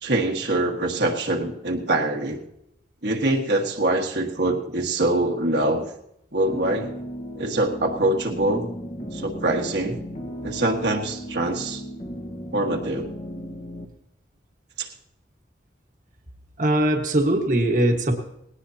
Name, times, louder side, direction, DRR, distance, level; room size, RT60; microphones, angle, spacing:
voice 1, 0.0-2.4 3.0-5.9 6.3-6.9 7.3-8.7 9.1-10.0 10.4-11.8 12.5-13.1 14.8-14.9, right 2 dB, 65° right, 1 dB, 1.6 m, -24 dB
sound 1, 6.5-13.9, equal, 40° left, 1.5 m, -36 dB
voice 2, 16.6-18.2, right 1 dB, 45° right, 2 dB, 1.5 m, -21 dB
19.5 x 18.0 x 2.8 m, 0.80 s
head